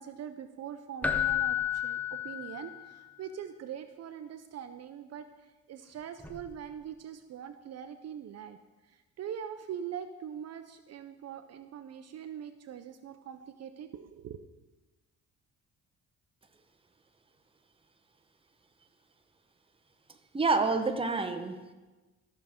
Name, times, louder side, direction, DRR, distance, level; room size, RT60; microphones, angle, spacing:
voice 1, 0.0-5.3 5.7-8.6 9.2-14.4, right 8 dB, 55° right, 9 dB, 0.6 m, -42 dB
Keyboard (musical), 1.0-3.0 6.2-6.4, left 9 dB, 5° left, 0.6 m, -31 dB
voice 2, 20.3-21.7, right 3 dB, 20° right, 6 dB, 0.9 m, -28 dB
14.0 x 6.3 x 3.6 m, 1.2 s
cardioid pair, 90°, 30 cm